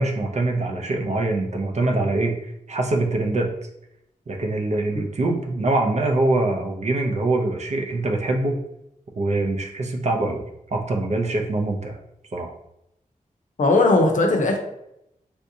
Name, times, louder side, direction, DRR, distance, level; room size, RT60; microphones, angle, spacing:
voice 1, 0.0-3.5 4.3-8.6 9.2-10.4 10.7-12.0 12.3-12.5, right 2 dB, 50° right, 2 dB, 0.5 m, -24 dB
voice 2, 13.6-14.6, left 2 dB, 65° left, 2 dB, 0.6 m, -18 dB
3.4 x 2.6 x 2.7 m, 0.81 s
wide cardioid pair, 90°, 14 cm